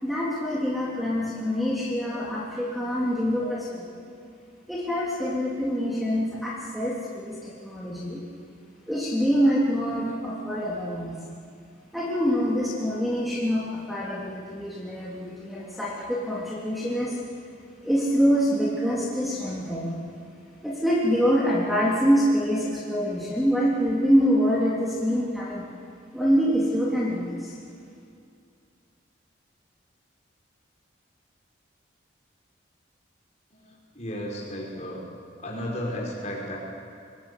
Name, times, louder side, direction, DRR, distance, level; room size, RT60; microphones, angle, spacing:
voice 1, 0.0-3.9 4.7-8.2 8.9-11.1 11.9-17.2 17.8-20.0 20.6-25.7 26.1-27.5, equal, ahead, -6 dB, 3.4 m, -25 dB
voice 2, 33.5-35.0 35.4-36.6, equal, 35° left, -2 dB, 5.7 m, -34 dB
25.5 x 20.0 x 8.4 m, 2.3 s
head